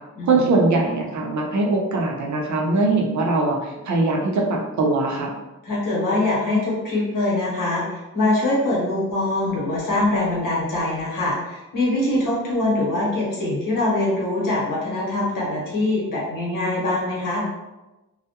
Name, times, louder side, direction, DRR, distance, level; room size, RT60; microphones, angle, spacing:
voice 1, 0.2-5.3, right 3 dB, 65° right, 0 dB, 0.6 m, -21 dB
voice 2, 5.6-17.4, left 2 dB, 80° left, -4 dB, 0.9 m, -23 dB
2.3 x 2.1 x 2.7 m, 1.0 s
wide cardioid pair, 85°, 32 cm